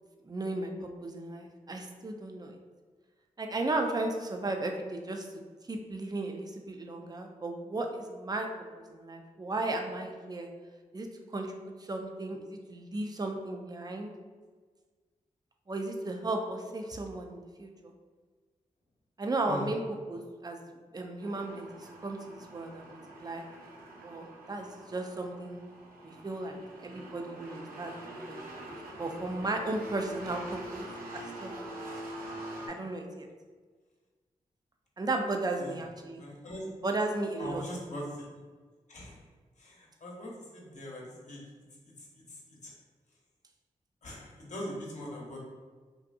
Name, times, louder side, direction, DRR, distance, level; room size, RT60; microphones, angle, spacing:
voice 1, 0.2-0.7 1.0-2.6 3.4-5.3 5.7-8.5 8.8-10.5 10.9-11.6 11.9-14.1 15.7-17.9 19.2-20.6 20.9-23.4 24.0-25.6 26.0-26.6 26.8-28.4 28.7-31.8 32.7-33.3 35.0-36.2 36.8-37.6, right 2 dB, 25° right, 3 dB, 0.4 m, -35 dB
sound 1, 21.2-32.7, right 1 dB, 80° right, 0.5 m, -45 dB
voice 2, 36.2-36.6 37.4-38.3 38.9-39.1 39.6-41.4 42.6-42.7 44.0-45.4, equal, 55° left, -3 dB, 0.9 m, -41 dB
2.6 x 2.5 x 2.4 m, 1.4 s
supercardioid pair, 40°, 15 cm